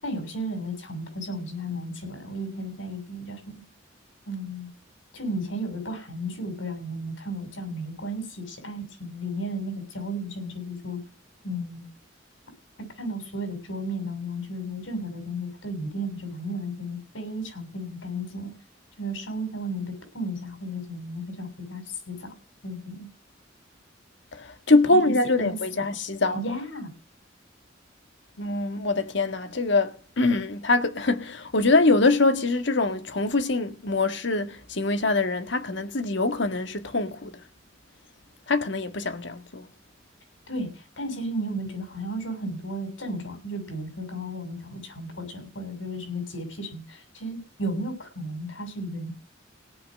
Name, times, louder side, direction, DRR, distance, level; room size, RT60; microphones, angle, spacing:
voice 1, 0.0-3.6 4.3-4.7 5.1-11.0 11.4-11.9 13.0-18.5 19.0-22.3 22.6-23.1 24.8-25.9 26.3-26.9 40.5-49.1, equal, 80° left, 7.4 m, -34 dB
voice 2, 24.3-26.4 28.4-37.3 38.5-39.6, left 2 dB, 65° left, 1.8 m, -24 dB
17.5 x 6.0 x 7.6 m
head